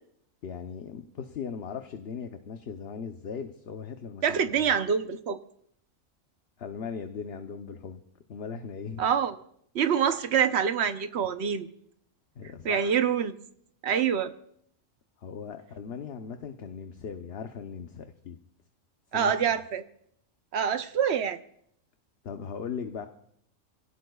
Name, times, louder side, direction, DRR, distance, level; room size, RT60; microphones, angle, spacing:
voice 1, 0.4-4.7 6.6-8.0 8.3-9.1 12.4-13.0 15.2-18.4 19.1-19.6 22.2-23.1, left 6 dB, 55° left, 6 dB, 1.0 m, -38 dB
voice 2, 4.2-5.4 9.0-9.4 9.7-11.7 12.6-13.3 13.8-14.3 19.1-19.8 20.5-21.4, right 7 dB, 60° right, 10 dB, 1.0 m, -26 dB
27.5 x 17.0 x 2.3 m, 0.70 s
omnidirectional pair, 1.3 m